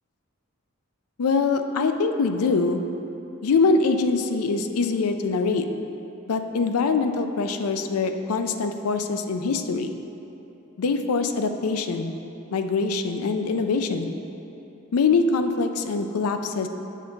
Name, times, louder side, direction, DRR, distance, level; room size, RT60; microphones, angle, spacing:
voice 1, 1.2-2.8 3.4-5.7 6.3-9.9 10.8-12.1 12.5-14.2 14.9-16.7, left 4 dB, 90° left, 7 dB, 0.4 m, -23 dB
7.4 x 3.9 x 5.8 m, 3.0 s
head